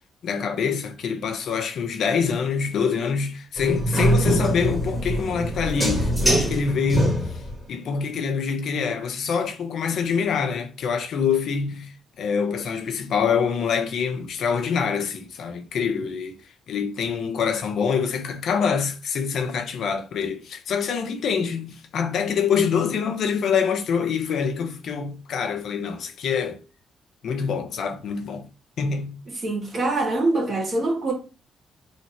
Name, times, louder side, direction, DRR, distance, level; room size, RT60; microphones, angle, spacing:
voice 1, 0.2-7.3 7.7-16.4 16.7-26.6 27.2-28.5 28.8-29.2, left 6 dB, 70° left, 0.7 m, -25 dB
sound 1, 3.6-7.6, right 1 dB, ahead, 1.3 m, -23 dB
voice 2, 29.4-31.1, right 2 dB, 45° right, 1.8 m, -24 dB
3.2 x 2.8 x 4.3 m
cardioid pair, 90°, 0 cm